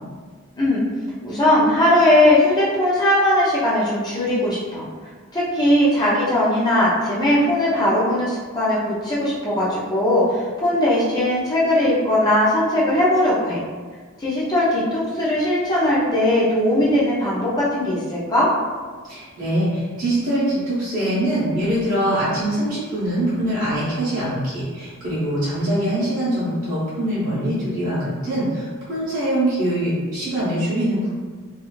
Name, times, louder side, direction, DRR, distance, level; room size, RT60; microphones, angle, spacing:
voice 1, 1.2-4.8 5.3-13.6 14.2-18.5, left 1 dB, 20° left, -7 dB, 0.6 m, -19 dB
voice 2, 19.0-31.1, right 1 dB, 40° right, -11 dB, 0.8 m, -23 dB
2.6 x 2.4 x 3.1 m, 1.5 s
head